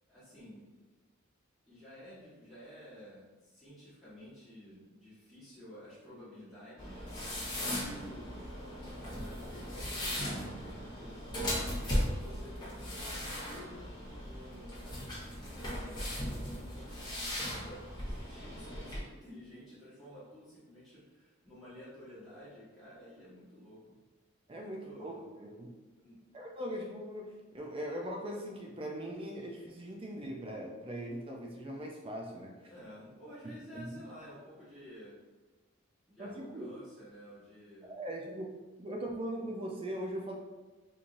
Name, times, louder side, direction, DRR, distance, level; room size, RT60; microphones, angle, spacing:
voice 1, 0.1-0.8 1.7-8.3 8.9-11.5 12.0-24.0 24.5-25.2 26.0-26.3 32.7-35.1 36.1-37.9, equal, ahead, -14 dB, 1.2 m, -52 dB
sound 1, 6.8-19.0, equal, 20° left, 0.9 m, -38 dB
voice 2, 24.5-25.8 26.3-32.7 33.4-34.0 36.2-36.7 37.8-40.4, equal, 25° right, 0 dB, 0.4 m, -40 dB
4.5 x 2.6 x 2.5 m, 1.2 s
head